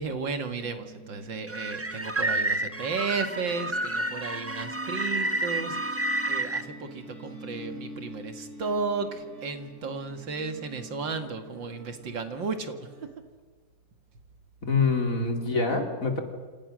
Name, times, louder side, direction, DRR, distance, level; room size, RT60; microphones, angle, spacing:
voice 1, 0.0-13.1, right 4 dB, 85° right, 7 dB, 2.7 m, -34 dB
sound 1, 0.6-13.1, right 1 dB, 50° right, 4.6 m, -46 dB
sound 2, 1.5-6.6, right 2 dB, 10° right, 0.9 m, -30 dB
voice 2, 14.6-16.2, left 4 dB, 45° left, 4 dB, 3.3 m, -25 dB
28.5 x 27.5 x 6.4 m, 1.5 s
omnidirectional pair, 2.0 m